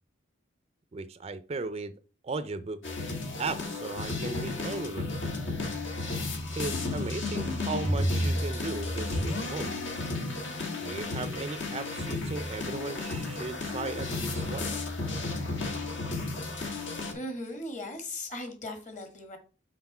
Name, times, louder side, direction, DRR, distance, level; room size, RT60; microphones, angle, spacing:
voice 1, 0.9-1.9 2.2-2.8 3.4-5.1 6.5-9.8 10.8-14.9, right 3 dB, 30° right, 13 dB, 0.4 m, -36 dB
sound 1, 2.8-17.1, left 2 dB, 70° left, 1.5 m, -32 dB
voice 2, 17.1-19.4, left 1 dB, 40° left, 6 dB, 1.6 m, -38 dB
5.8 x 4.6 x 5.4 m, 0.36 s
head